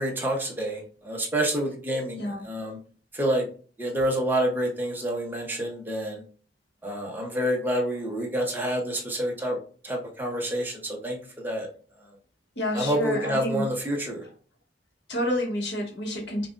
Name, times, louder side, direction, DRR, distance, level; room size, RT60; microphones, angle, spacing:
voice 1, 0.0-2.8 3.1-3.5 3.8-6.2 6.8-9.6 9.8-11.7 12.7-14.2, right 1 dB, 10° right, -1 dB, 0.9 m, -28 dB
voice 2, 12.6-13.7 15.1-16.5, left 1 dB, 90° left, 1 dB, 1.3 m, -29 dB
5.7 x 2.4 x 2.6 m, 0.40 s
head